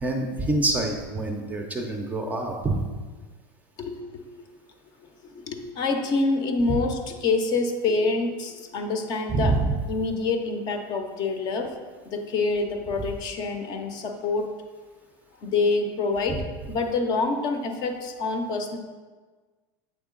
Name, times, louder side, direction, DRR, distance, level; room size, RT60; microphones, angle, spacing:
voice 1, 0.0-2.8 6.7-6.8 9.3-9.8 16.3-16.4, right 2 dB, 15° right, 3 dB, 0.5 m, -26 dB
voice 2, 3.8-4.5 5.2-9.5 9.9-11.7 12.1-14.5 15.4-16.4 16.7-18.8, left 3 dB, 35° left, 6 dB, 0.6 m, -26 dB
8.1 x 3.5 x 3.8 m, 1.4 s
supercardioid pair, 155°, 12 cm